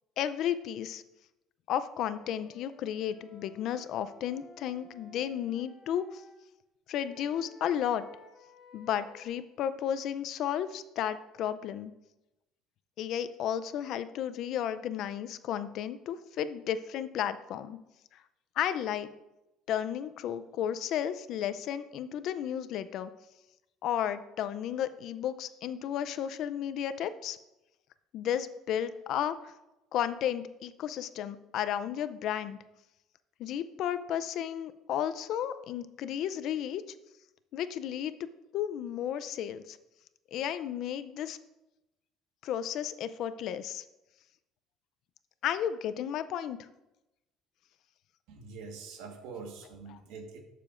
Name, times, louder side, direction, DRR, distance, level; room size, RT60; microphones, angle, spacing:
voice 1, 0.2-1.0 1.7-6.2 6.9-8.0 8.7-11.9 13.0-17.8 18.6-19.1 19.7-23.1 23.8-27.4 28.1-29.5 29.9-32.6 33.4-36.8 37.5-38.1 38.5-39.8 40.3-41.4 42.4-43.8 45.4-46.6, left 10 dB, 60° left, 13 dB, 0.5 m, -33 dB
Wind instrument woodwind instrument, 2.0-6.4 7.0-9.3, left 3 dB, 35° left, 1.8 m, -56 dB
voice 2, 48.3-50.4, right 4 dB, 80° right, 3 dB, 1.4 m, -44 dB
12.0 x 6.7 x 2.5 m, 0.94 s
cardioid pair, 120°, 0 cm